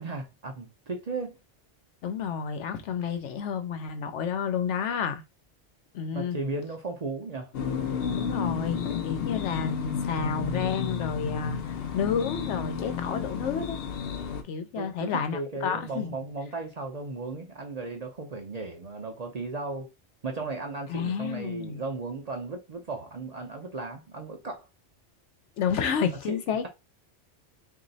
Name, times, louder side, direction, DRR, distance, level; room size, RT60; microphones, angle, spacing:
voice 1, 0.0-1.4 6.1-7.5 14.7-19.9 20.2-24.7 26.3-26.4, right 3 dB, 45° right, 0.6 m, -35 dB
voice 2, 2.0-5.2 5.9-6.4 8.1-11.6 11.9-13.8 14.4-16.1 20.9-21.8 25.6-26.7, left 7 dB, 85° left, 1.0 m, -30 dB
sound 1, 7.5-14.4, left 7 dB, 65° left, 0.7 m, -31 dB
3.0 x 2.6 x 4.0 m
omnidirectional pair, 1.2 m